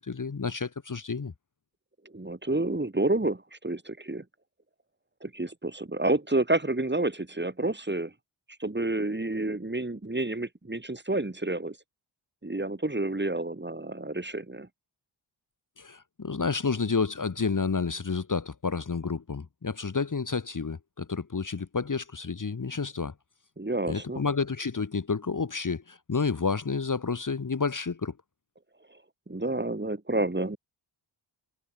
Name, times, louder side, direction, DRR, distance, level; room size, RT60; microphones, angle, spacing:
voice 1, 0.0-1.3 15.8-23.1 23.9-28.1, left 4 dB, 40° left, 1.8 m, -30 dB
voice 2, 2.1-4.2 5.2-8.1 8.6-11.8 12.4-14.7 23.6-24.2 29.3-30.6, right 2 dB, 20° right, 4.6 m, -29 dB
cardioid pair, 60°, 49 cm